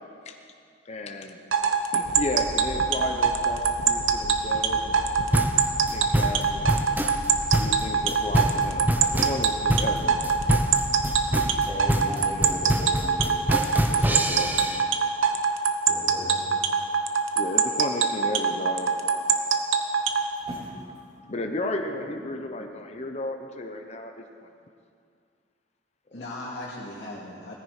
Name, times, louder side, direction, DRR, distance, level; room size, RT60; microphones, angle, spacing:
voice 1, 0.8-1.4 1.9-5.1 5.9-6.9 7.5-10.2 13.9-14.6 16.0-16.5 17.4-18.9 21.2-24.5 26.1-26.2, left 1 dB, 35° left, 4 dB, 0.9 m, -34 dB
sound 1, 1.5-20.3, right 7 dB, 90° right, 1.1 m, -23 dB
sound 2, 2.0-11.7, right 1 dB, 60° right, 1.3 m, -38 dB
sound 3, 5.3-14.8, right 1 dB, 10° right, 0.7 m, -26 dB
voice 2, 11.7-13.6 15.9-16.5 18.0-18.1 19.3-19.8 20.4-21.2, equal, 25° right, -3 dB, 3.0 m, -38 dB
voice 3, 13.7-14.9 26.1-27.6, left 1 dB, 65° left, -7 dB, 2.3 m, -39 dB
18.0 x 15.0 x 4.9 m, 2.4 s
head